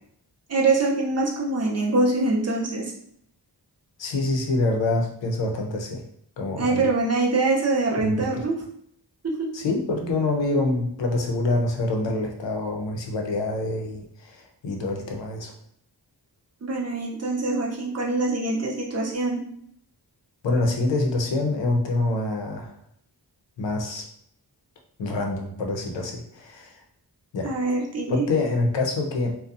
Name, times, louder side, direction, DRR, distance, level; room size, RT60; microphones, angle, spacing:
voice 1, 0.5-2.9 6.6-8.6 9.2-9.5 16.6-19.4 27.4-28.3, right 3 dB, 40° right, -2 dB, 0.5 m, -24 dB
voice 2, 4.0-6.0 6.4-6.8 8.0-8.2 9.5-15.5 20.4-22.7 23.6-24.0 25.0-26.7 27.3-27.5 28.1-29.4, left 2 dB, 90° left, 2 dB, 0.6 m, -26 dB
2.5 x 2.1 x 2.4 m, 0.67 s
wide cardioid pair, 120°, 42 cm